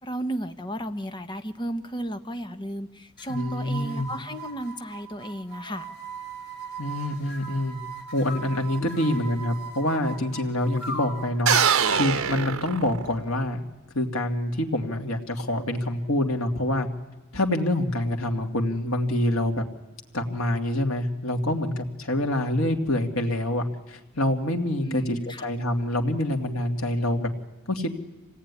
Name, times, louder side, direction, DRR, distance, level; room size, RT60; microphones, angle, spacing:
voice 1, 0.0-5.9 8.8-9.2 24.8-25.5, right 1 dB, 20° left, 8 dB, 1.2 m, -34 dB
sound 1, 3.2-11.4, right 4 dB, 55° left, 5.7 m, -39 dB
voice 2, 3.3-4.1 6.8-7.8 8.1-13.6 13.9-16.9 17.3-19.7 20.1-27.3 27.7-27.9, left 1 dB, 85° left, 3 dB, 2.7 m, -26 dB
sound 2, 11.5-13.4, right 7 dB, 80° right, 1.0 m, -23 dB
26.0 x 18.0 x 9.9 m, 1.1 s
head